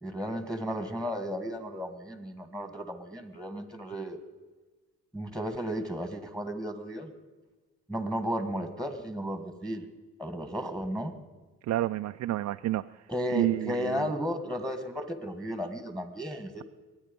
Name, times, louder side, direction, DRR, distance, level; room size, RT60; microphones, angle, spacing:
voice 1, 0.0-4.2 5.1-7.1 7.9-9.9 10.2-11.1 13.1-16.6, equal, 5° left, 9 dB, 1.6 m, -34 dB
voice 2, 11.7-12.8 13.3-14.1, right 14 dB, 65° right, 9 dB, 0.5 m, -29 dB
23.0 x 8.9 x 5.3 m, 1.3 s
cardioid pair, 90°, 30 cm